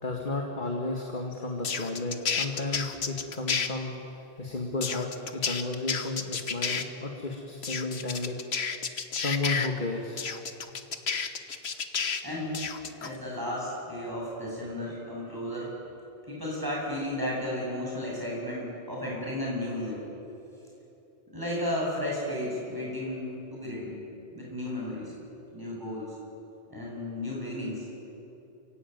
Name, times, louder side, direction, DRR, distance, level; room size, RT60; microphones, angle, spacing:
voice 1, 0.0-4.0 4.4-8.4 9.1-10.4, left 2 dB, 50° left, 1 dB, 2.1 m, -33 dB
sound 1, 1.6-3.7 4.8-6.8 7.6-9.7 10.2-12.2 12.5-13.1, left 6 dB, 90° left, 1.4 m, -30 dB
voice 2, 12.2-12.6 13.0-15.7 16.3-20.0 21.3-24.0 24.3-25.1 25.5-26.2 26.7-27.9, left 1 dB, 20° right, -4 dB, 7.9 m, -33 dB
29.0 x 16.5 x 9.4 m, 3.0 s
omnidirectional pair, 1.0 m